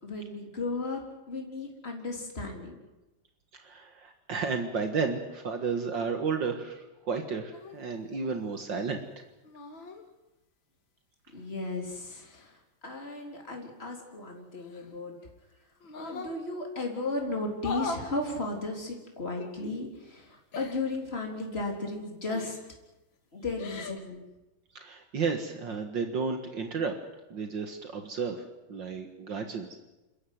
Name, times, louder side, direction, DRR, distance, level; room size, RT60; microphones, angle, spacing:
voice 1, 0.0-1.0 1.3-2.8 11.3-15.1 15.9-22.6 23.3-24.2, left 2 dB, 30° left, 1 dB, 4.0 m, -35 dB
voice 2, 3.6-9.0 24.8-26.9 27.3-28.4 28.7-29.8, right 5 dB, 65° right, 5 dB, 2.4 m, -32 dB
sound 1, 7.5-7.8 9.4-10.0 11.4-12.5 14.5-15.3 15.8-16.4 17.5-18.1 19.3-19.5 20.5-20.9 22.3-22.7 23.4-24.0, left 4 dB, 75° left, 2.7 m, -40 dB
28.5 x 14.5 x 9.4 m, 1.0 s
omnidirectional pair, 2.1 m